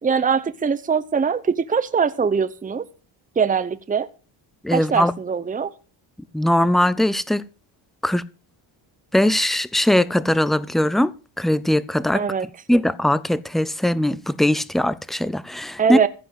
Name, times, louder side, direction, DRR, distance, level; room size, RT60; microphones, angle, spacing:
voice 1, 0.0-2.8 3.4-4.1 4.7-5.7 12.1-12.5 15.8-16.1, right 6 dB, 15° right, 0.8 m, -22 dB
voice 2, 4.6-5.1 6.3-7.4 8.0-8.3 9.1-11.1 11.4-12.2 12.7-16.0, left 1 dB, ahead, 0.5 m, -20 dB
15.0 x 5.1 x 7.9 m
cardioid pair, 95°, 48 cm